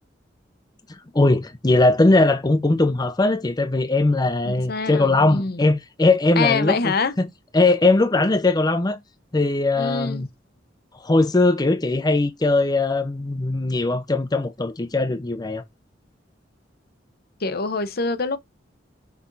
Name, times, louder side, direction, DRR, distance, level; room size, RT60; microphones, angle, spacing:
voice 1, 0.9-7.3 7.5-9.0 9.3-10.3 11.0-15.6, left 2 dB, 20° left, 0.6 m, -20 dB
voice 2, 4.4-5.6 6.4-7.1 9.8-10.3 17.4-18.4, left 4 dB, 55° left, 0.8 m, -25 dB
6.0 x 4.3 x 3.9 m
head